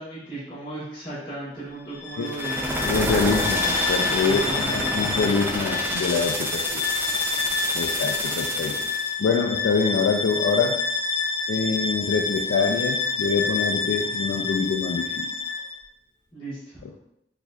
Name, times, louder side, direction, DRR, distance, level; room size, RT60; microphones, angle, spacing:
voice 1, 0.0-2.8 4.1-5.2 16.3-16.8, right 2 dB, 30° left, -10 dB, 1.2 m, -35 dB
Bowed string instrument, 1.9-15.8, left 4 dB, 50° left, 0.7 m, -28 dB
sound 1, 2.3-9.1, right 1 dB, 10° right, 0.4 m, -29 dB
voice 2, 2.8-4.4 4.7-6.8 7.7-8.8 9.2-10.8 11.5-15.3, left 5 dB, 85° left, 0 dB, 0.3 m, -25 dB
4.4 x 2.5 x 2.3 m, 0.78 s
head